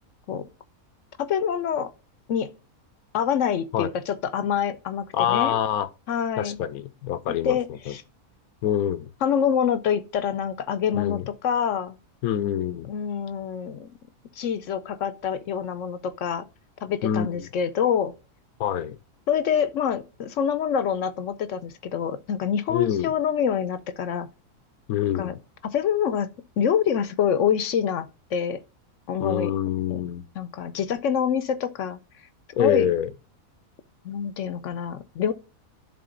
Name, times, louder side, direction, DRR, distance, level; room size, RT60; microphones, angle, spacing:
voice 1, 1.2-1.9 2.3-2.5 3.1-5.6 6.1-6.6 7.3-8.0 9.2-12.0 12.9-14.0 14.4-16.4 16.8-18.1 19.3-24.3 25.1-25.3 25.6-26.3 26.6-28.6 29.1-29.5 29.9-30.0 30.4-32.0 32.6-32.9 34.0-35.3, left 8 dB, 70° left, 0.9 m, -26 dB
voice 2, 5.1-5.9 6.4-7.6 7.9-8.0 8.6-9.1 10.9-11.3 12.2-12.9 17.0-17.5 18.6-19.0 22.7-23.1 24.9-25.4 29.2-30.2 32.5-33.1, left 10 dB, 85° left, 1.1 m, -25 dB
10.5 x 3.7 x 3.8 m
omnidirectional pair, 1.5 m